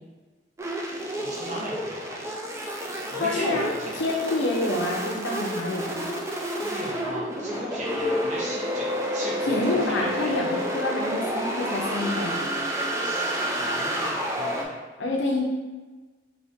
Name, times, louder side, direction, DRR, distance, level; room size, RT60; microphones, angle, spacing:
sound 1, 0.6-14.6, equal, 15° right, 0.4 m, -29 dB
voice 1, 1.2-2.2 3.1-4.0 6.6-8.9 9.1-10.4 13.0-14.7, equal, 40° right, -5 dB, 1.0 m, -37 dB
voice 2, 3.2-3.7 3.9-6.1 9.4-12.5 15.0-15.4, left 2 dB, 70° left, -1 dB, 0.6 m, -27 dB
4.1 x 2.7 x 3.5 m, 1.3 s
head